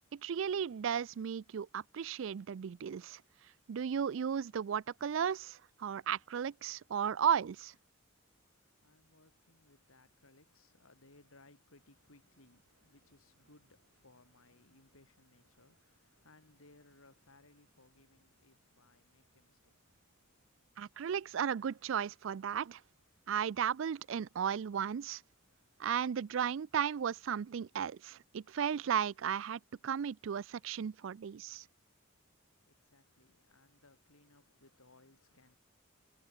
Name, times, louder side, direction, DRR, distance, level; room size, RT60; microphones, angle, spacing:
voice 1, 0.1-3.2 3.7-7.7 20.8-22.8 23.3-25.2 25.8-31.6, right 8 dB, 65° right, 0.4 m, -35 dB
voice 2, 8.4-20.7 32.7-35.5, left 2 dB, 85° left, 4.2 m, -65 dB
sound 1, 11.8-27.4, right 1 dB, 40° right, 8.0 m, -78 dB
head